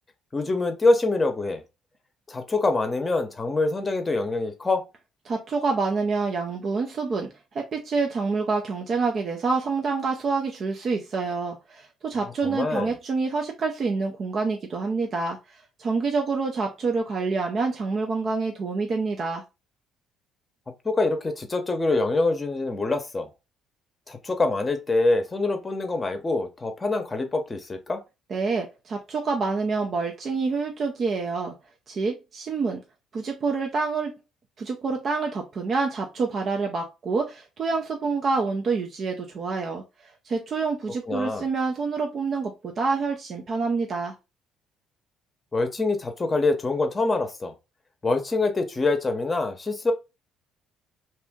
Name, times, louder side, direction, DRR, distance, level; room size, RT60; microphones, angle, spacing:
voice 1, 0.3-1.6 2.3-4.8 12.4-12.9 20.8-23.3 24.1-28.0 41.1-41.4 45.5-47.5 48.0-49.9, left 3 dB, 25° left, 0.8 m, -25 dB
voice 2, 5.3-19.4 28.3-31.5 31.9-32.8 33.1-34.2 34.6-44.1, right 4 dB, 50° right, 0.6 m, -27 dB
2.8 x 2.5 x 3.5 m
supercardioid pair, 70°, 0 cm